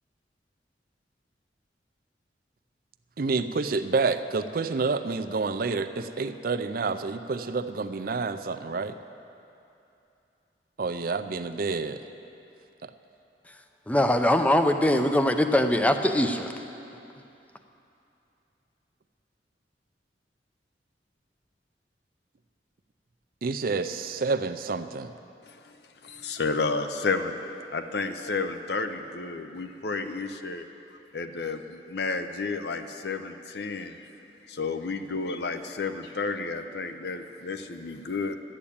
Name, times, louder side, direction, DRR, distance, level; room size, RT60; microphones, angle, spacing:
voice 1, 3.2-9.0 10.8-12.0 12.8-12.9 23.4-25.1, right 4 dB, 50° right, 10 dB, 0.5 m, -28 dB
voice 2, 13.9-16.5, left 1 dB, 10° left, 7 dB, 0.5 m, -22 dB
voice 3, 26.0-27.4 27.7-30.6 31.1-34.0 34.5-38.3, left 4 dB, 65° left, 8 dB, 0.7 m, -31 dB
12.0 x 8.7 x 8.6 m, 2.8 s
head